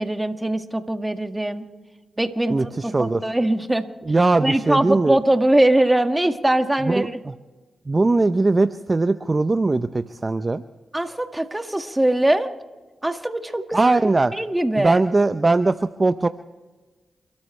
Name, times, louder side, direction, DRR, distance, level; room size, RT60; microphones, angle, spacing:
voice 1, 0.0-1.6 2.2-3.8 4.4-7.2 10.9-12.5 13.0-15.0, right 1 dB, 15° right, 6 dB, 1.8 m, -22 dB
voice 2, 2.5-3.2 4.1-5.2 6.8-7.3 7.9-10.6 13.7-14.3 14.8-16.3, right 3 dB, 40° right, 10 dB, 0.7 m, -20 dB
29.0 x 13.0 x 3.3 m, 1.2 s
supercardioid pair, 45°, 0 cm